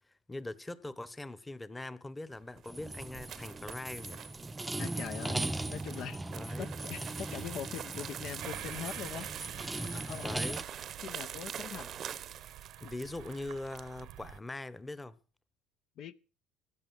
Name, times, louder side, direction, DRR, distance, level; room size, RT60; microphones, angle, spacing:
voice 1, 0.3-4.2 6.3-6.7 10.2-10.6 12.8-15.2, left 2 dB, 15° left, 1.1 m, -42 dB
sound 1, 2.4-14.2, right 9 dB, 45° right, 0.8 m, -45 dB
sound 2, 2.7-10.6, right 2 dB, 10° right, 0.7 m, -39 dB
voice 2, 4.8-5.4 5.7-9.3 9.9-10.6 11.0-11.9 12.8-12.9 16.0-16.2, left 8 dB, 60° left, 0.8 m, -42 dB
sound 3, 8.4-14.4, right 14 dB, 70° right, 1.0 m, -48 dB
15.5 x 9.9 x 6.4 m
supercardioid pair, 90°, 0 cm